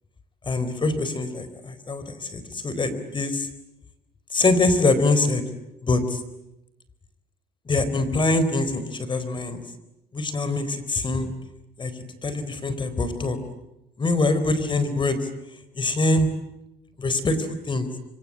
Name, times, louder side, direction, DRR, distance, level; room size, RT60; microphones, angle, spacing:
voice 1, 0.5-3.5 4.3-5.4 5.8-6.2 7.7-9.6 10.1-11.3 11.8-11.9 12.2-13.4 14.0-15.3 15.7-16.3 17.0-17.9, left 2 dB, 30° left, 12 dB, 4.1 m, -24 dB
26.0 x 25.0 x 8.7 m, 0.92 s
cardioid pair, 110°, 17 cm